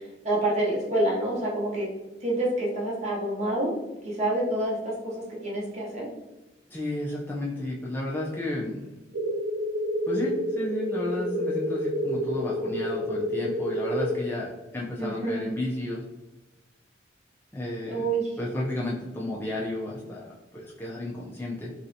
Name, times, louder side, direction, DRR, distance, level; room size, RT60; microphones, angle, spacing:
voice 1, 0.2-1.9 2.2-3.7 4.0-6.1 15.0-15.5 17.9-18.2, right 1 dB, 40° right, -3 dB, 0.8 m, -27 dB
voice 2, 6.7-8.9 10.1-16.0 17.5-18.1 18.4-21.7, left 1 dB, 10° left, -4 dB, 0.4 m, -32 dB
sound 1, 9.1-14.1, equal, 60° right, 0.4 m, -29 dB
3.2 x 2.6 x 2.6 m, 1.1 s
head